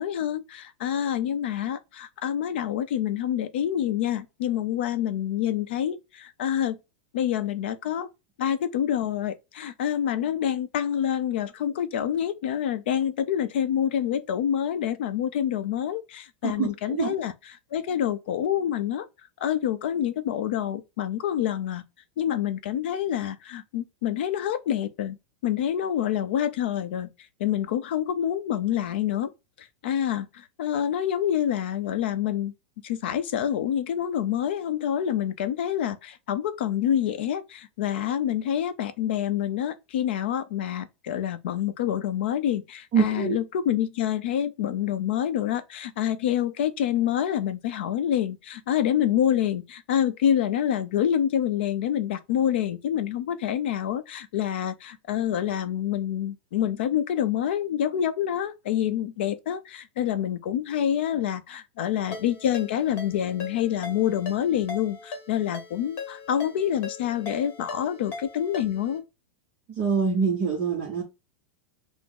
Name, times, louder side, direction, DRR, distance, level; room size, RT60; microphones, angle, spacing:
voice 1, 0.0-6.8 7.1-8.1 8.4-17.3 17.7-19.1 19.4-21.8 22.2-25.2 25.4-27.1 27.4-29.3 29.6-32.5 32.8-69.0, left 10 dB, 60° left, 0.6 m, -27 dB
voice 2, 16.4-17.1 42.9-43.4 69.8-71.0, right 6 dB, 30° right, 0.7 m, -25 dB
Ringtone, 62.1-69.0, left 4 dB, 30° left, 1.0 m, -40 dB
6.0 x 2.0 x 3.6 m
supercardioid pair, 175°, 7 cm